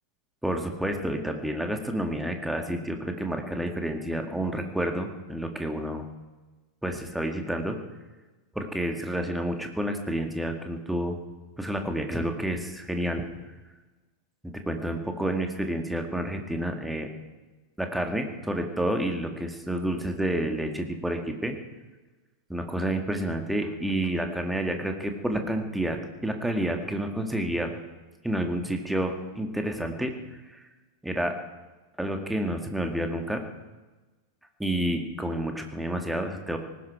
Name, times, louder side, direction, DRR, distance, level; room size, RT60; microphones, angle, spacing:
voice 1, 0.4-6.1 6.8-7.8 8.6-11.2 11.6-13.3 14.4-17.1 17.8-21.6 22.5-27.7 28.2-30.1 31.0-31.3 32.0-33.4 34.6-36.6, right 1 dB, 5° right, 4 dB, 2.0 m, -29 dB
19.0 x 16.5 x 4.6 m, 1.2 s
figure-of-eight pair, 90°, 0 cm